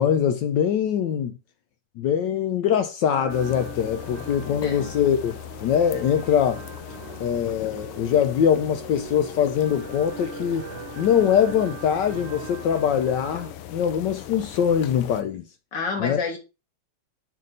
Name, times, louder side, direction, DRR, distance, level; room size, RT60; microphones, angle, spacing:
voice 1, 0.0-1.3 2.0-6.6 7.2-10.7 11.0-15.4 16.0-16.2, left 8 dB, 75° left, 1.0 m, -23 dB
sound 1, 3.1-13.5, right 7 dB, 65° right, 1.5 m, -41 dB
sound 2, 3.3-15.2, left 11 dB, 90° left, 1.6 m, -40 dB
voice 2, 4.4-4.9 15.7-16.4, left 4 dB, 55° left, 2.2 m, -29 dB
5.4 x 5.4 x 3.9 m
omnidirectional pair, 2.4 m